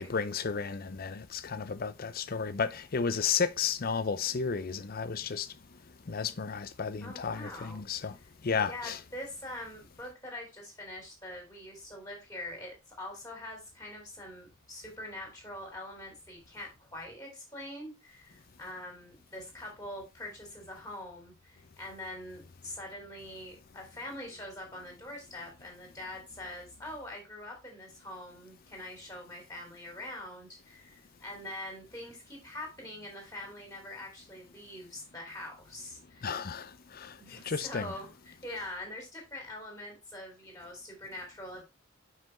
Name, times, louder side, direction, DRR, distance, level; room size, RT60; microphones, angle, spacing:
voice 1, 0.0-5.5 6.1-8.1 8.4-9.0 36.2-36.6 37.5-37.9, left 6 dB, 45° left, 0.5 m, -32 dB
voice 2, 7.0-7.8 8.7-36.3 37.2-41.6, left 1 dB, 15° left, 2.7 m, -44 dB
5.7 x 5.3 x 4.3 m
head